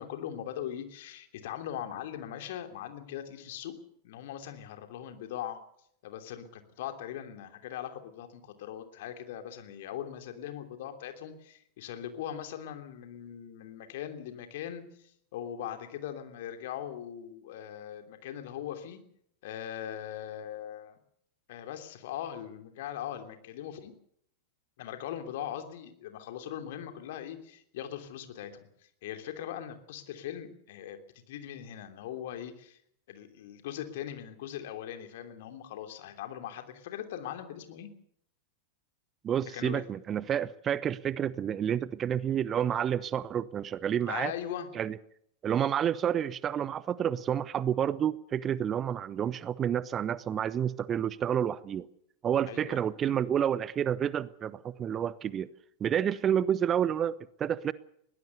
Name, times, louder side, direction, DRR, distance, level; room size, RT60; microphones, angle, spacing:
voice 1, 0.0-3.7 4.0-5.6 6.0-19.0 19.4-21.0 21.5-23.9 24.8-28.7 29.0-31.0 31.3-32.8 33.1-37.9 39.5-39.8 44.1-44.7 52.5-52.8, left 10 dB, 55° left, 7 dB, 3.1 m, -40 dB
voice 2, 39.2-44.3 44.7-45.0 45.4-51.9 52.2-55.5 55.8-57.7, right 9 dB, 25° right, 20 dB, 0.8 m, -29 dB
21.5 x 18.0 x 6.9 m, 0.69 s
figure-of-eight pair, 90°, 0 cm